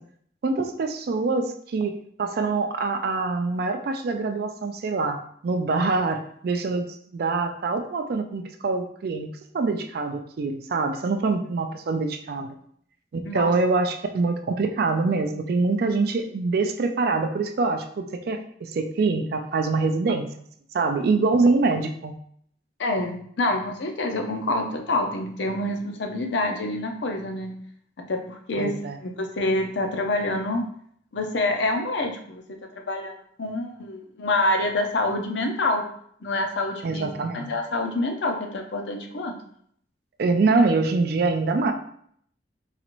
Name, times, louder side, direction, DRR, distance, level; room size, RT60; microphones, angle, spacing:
voice 1, 0.4-1.9 2.2-9.3 9.5-12.5 13.1-20.3 20.7-22.1 28.6-29.0 36.8-37.5 40.2-41.7, right 3 dB, 55° right, 6 dB, 0.4 m, -24 dB
voice 2, 13.3-13.6 22.8-27.6 28.0-28.7 29.0-30.6 31.1-32.4 32.9-35.8 36.2-37.1 37.3-39.3, left 2 dB, 70° left, 4 dB, 0.6 m, -27 dB
4.0 x 2.5 x 2.9 m, 0.65 s
head